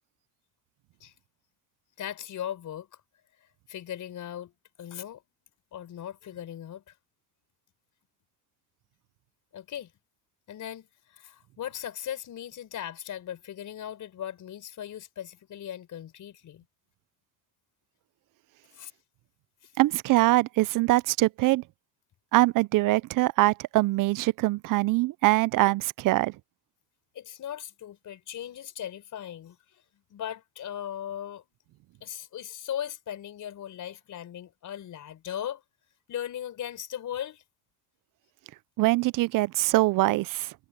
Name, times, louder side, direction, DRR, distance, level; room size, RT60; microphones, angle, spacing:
voice 1, 2.0-2.9 3.7-4.5 4.8-5.2 5.7-6.9 9.5-9.9 10.5-16.7 18.7-18.9 19.6-19.7 27.1-29.8 30.1-31.5 32.0-35.6 36.1-37.4, left 10 dB, 55° left, 5.2 m, -38 dB
voice 2, 19.8-21.6 22.3-26.3 38.8-40.5, right 19 dB, 60° right, 0.6 m, -23 dB
supercardioid pair, 80°, 37 cm